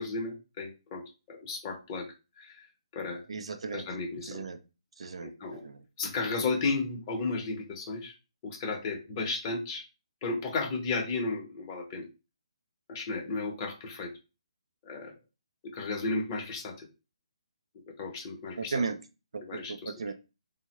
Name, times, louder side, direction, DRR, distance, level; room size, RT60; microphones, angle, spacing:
voice 1, 0.0-2.1 2.4-2.6 2.9-3.2 3.7-4.5 5.2-5.6 6.0-8.1 8.4-9.8 10.2-12.1 12.9-14.1 14.8-15.1 15.7-16.9 18.0-18.8 19.4-19.9, left 3 dB, 25° left, 0.8 m, -34 dB
voice 2, 3.3-3.9 4.2-4.6 5.0-5.8 18.6-19.0 19.3-20.1, right 4 dB, 70° right, 0.5 m, -35 dB
3.5 x 2.1 x 2.9 m
hypercardioid pair, 160°, 3 cm